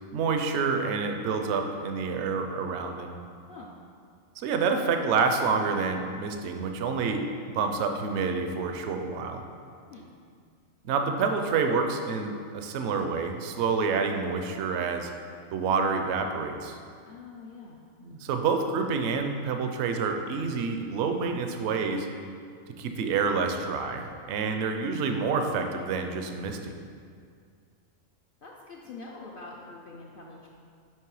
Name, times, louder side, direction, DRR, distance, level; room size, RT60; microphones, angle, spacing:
voice 1, 0.1-3.2 4.4-7.3 7.5-9.4 10.8-15.1 15.5-16.8 18.0-22.1 22.8-26.7, right 5 dB, 65° right, 5 dB, 0.8 m, -28 dB
voice 2, 17.1-17.8 28.4-30.5, left 3 dB, 55° left, -2 dB, 0.6 m, -45 dB
9.3 x 3.2 x 4.7 m, 2.2 s
omnidirectional pair, 1.4 m